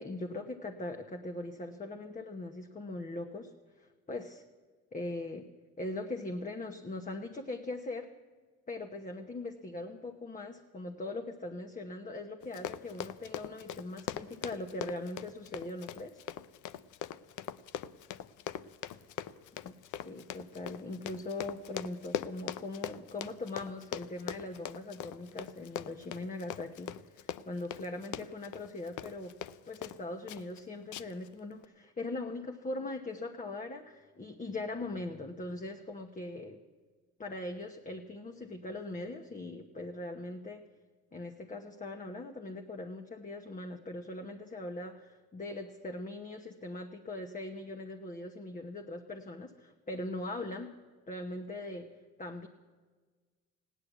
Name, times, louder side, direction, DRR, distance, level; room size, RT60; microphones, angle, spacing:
voice 1, 0.0-3.5 3.8-4.4 4.9-5.5 5.8-8.1 8.7-16.2 19.6-29.4 29.7-36.6 37.2-40.6 41.1-50.7 51.1-51.9 52.2-52.5, left 2 dB, 25° left, 4 dB, 1.0 m, -40 dB
Run, 12.4-30.0 30.3-30.6 30.9-31.3 31.6-31.7, left 10 dB, 80° left, 0.6 m, -41 dB
16.0 x 10.0 x 8.1 m, 1.4 s
cardioid pair, 90°, 30 cm